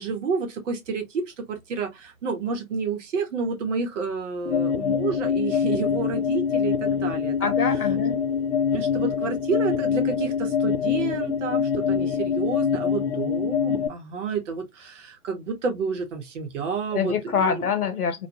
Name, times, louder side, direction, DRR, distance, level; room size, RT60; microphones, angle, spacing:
voice 1, 0.0-7.5 8.7-17.7, right 5 dB, 55° right, 1.1 m, -30 dB
sound 1, 4.5-13.9, left 7 dB, 50° left, 0.5 m, -24 dB
voice 2, 7.4-8.2 16.9-18.3, left 6 dB, 90° left, 0.8 m, -25 dB
2.5 x 2.2 x 2.6 m
hypercardioid pair, 125°, 43 cm